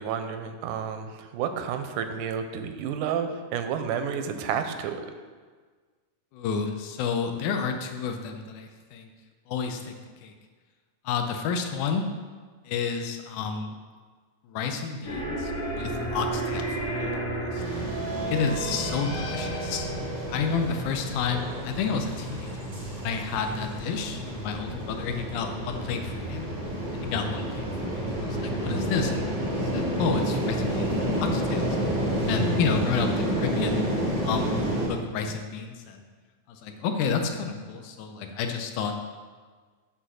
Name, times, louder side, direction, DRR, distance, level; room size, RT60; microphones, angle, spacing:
voice 1, 0.0-5.0, right 7 dB, 90° right, 8 dB, 2.1 m, -30 dB
voice 2, 6.3-9.1 9.5-9.9 10.2-10.3 11.1-12.1 12.7-13.7 14.4-17.3 17.5-17.6 18.3-19.9 20.3-26.5 26.9-27.7 27.9-31.7 32.2-33.8 34.2-36.0 36.5-38.9, left 5 dB, 80° left, 5 dB, 2.1 m, -30 dB
sound 1, 15.0-21.8, right 1 dB, 50° left, 2.2 m, -32 dB
sound 2, 17.6-34.9, equal, 40° right, 0.4 m, -30 dB
8.0 x 4.1 x 6.2 m, 1.5 s
omnidirectional pair, 3.6 m